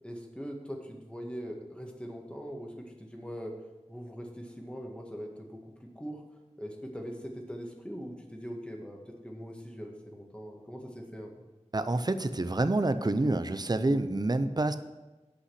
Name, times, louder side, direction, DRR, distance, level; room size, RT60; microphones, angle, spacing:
voice 1, 0.0-3.6 3.9-6.2 6.6-11.3, equal, 10° left, 1 dB, 1.9 m, -41 dB
voice 2, 11.7-14.8, right 2 dB, 35° right, 11 dB, 0.6 m, -27 dB
8.6 x 5.6 x 7.7 m, 1.1 s
wide cardioid pair, 50°, 12 cm